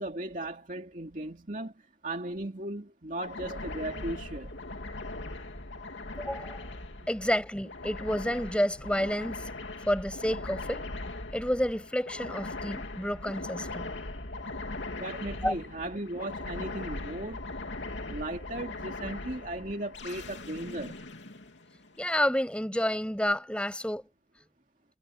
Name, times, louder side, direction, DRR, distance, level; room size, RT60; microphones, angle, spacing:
voice 1, 0.0-1.7 2.0-4.5 15.0-17.4 18.1-21.0, right 1 dB, 45° right, 2.6 m, -36 dB
sound 1, 3.2-22.1, left 2 dB, 75° left, 3.0 m, -40 dB
voice 2, 6.2-6.6 7.1-9.5 9.8-10.9 11.3-13.9 15.4-15.5 22.0-24.0, equal, 5° left, 8.0 m, -29 dB
head